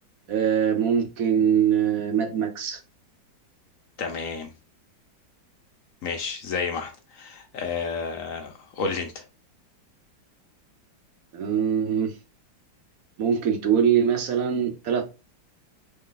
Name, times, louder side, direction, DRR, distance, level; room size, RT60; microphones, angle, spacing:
voice 1, 0.3-2.8 11.3-12.2 13.2-15.1, right 8 dB, 60° right, 1.0 m, -23 dB
voice 2, 4.0-4.5 6.0-9.2, left 5 dB, 60° left, 0.9 m, -31 dB
3.7 x 3.2 x 3.8 m
omnidirectional pair, 2.0 m